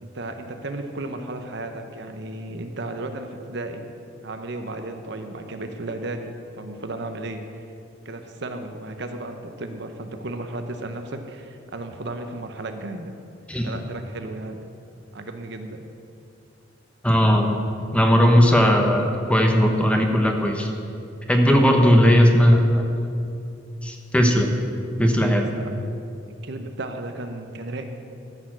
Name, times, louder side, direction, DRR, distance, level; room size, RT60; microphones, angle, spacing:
voice 1, 0.0-3.9 4.2-7.6 8.0-13.1 13.6-14.6 15.1-15.8 21.4-22.0 25.5-25.7 26.4-27.8, right 2 dB, 65° right, 6 dB, 0.9 m, -34 dB
voice 2, 17.0-20.7 21.3-22.9 23.8-24.5 25.0-25.5, equal, 5° left, 2 dB, 1.0 m, -18 dB
13.5 x 6.8 x 6.3 m, 2.5 s
head